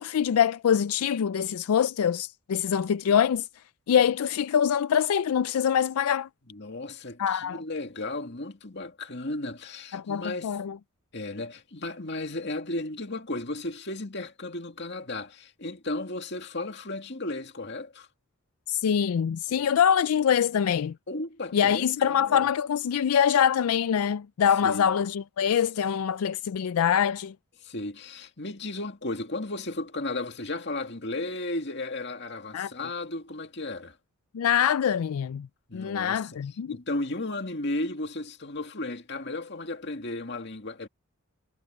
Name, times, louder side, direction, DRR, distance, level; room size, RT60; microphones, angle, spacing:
voice 1, 0.0-3.5 3.9-6.3 7.2-7.6 9.9-10.8 18.7-20.9 21.5-27.3 32.5-32.7 34.3-35.5 35.7-36.8, left 8 dB, 80° left, 0.4 m, -24 dB
voice 2, 6.5-10.6 11.1-18.1 19.5-19.8 21.1-22.5 24.6-24.9 27.6-34.0 35.7-36.4 36.7-40.9, left 2 dB, 50° left, 2.3 m, -34 dB
head